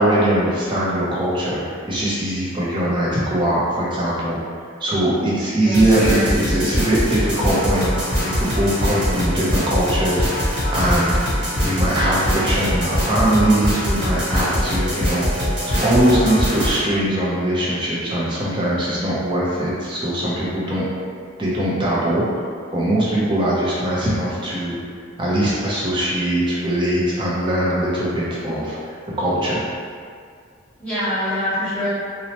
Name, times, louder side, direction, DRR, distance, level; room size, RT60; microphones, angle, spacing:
voice 1, 0.0-4.4 4.8-7.9 8.2-11.2 11.6-15.2 15.6-20.8 21.4-22.4 22.7-24.8 25.2-28.8 29.2-29.6, right 1 dB, 25° right, -7 dB, 0.6 m, -21 dB
voice 2, 5.5-6.3 30.8-31.9, left 1 dB, 5° left, -15 dB, 1.1 m, -24 dB
sound 1, 5.7-16.8, equal, 65° right, 0.9 m, -22 dB
3.0 x 2.0 x 2.8 m, 2.1 s
head